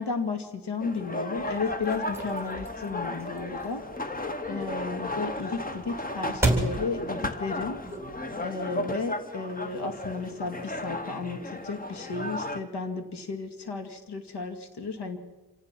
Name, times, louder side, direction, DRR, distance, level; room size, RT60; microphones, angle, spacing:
voice 1, 0.0-3.8 4.5-7.8 8.4-15.2, left 4 dB, 90° left, 7 dB, 2.4 m, -33 dB
sound 1, 0.8-12.6, left 1 dB, 20° left, 1.3 m, -35 dB
sound 2, 1.4-8.5, right 1 dB, 5° right, 3.5 m, -34 dB
26.0 x 17.5 x 6.0 m, 1.1 s
wide cardioid pair, 110°, 39 cm